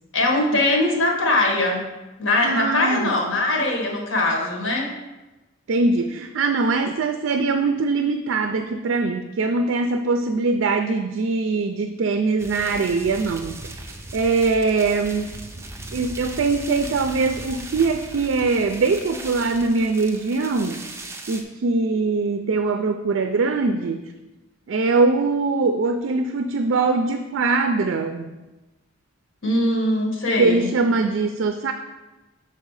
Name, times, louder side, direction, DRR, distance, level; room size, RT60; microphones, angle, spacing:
voice 1, 0.1-1.9 2.2-4.9 29.4-30.7, left 2 dB, 80° left, 1 dB, 1.4 m, -21 dB
voice 2, 2.4-3.2 5.7-15.4 15.9-20.8 21.3-24.0 24.7-28.3 30.4-31.7, right 3 dB, 65° right, 8 dB, 0.4 m, -22 dB
sound 1, 12.4-21.4, right 2 dB, 15° right, 0.5 m, -38 dB
6.4 x 4.3 x 4.7 m, 1.1 s
head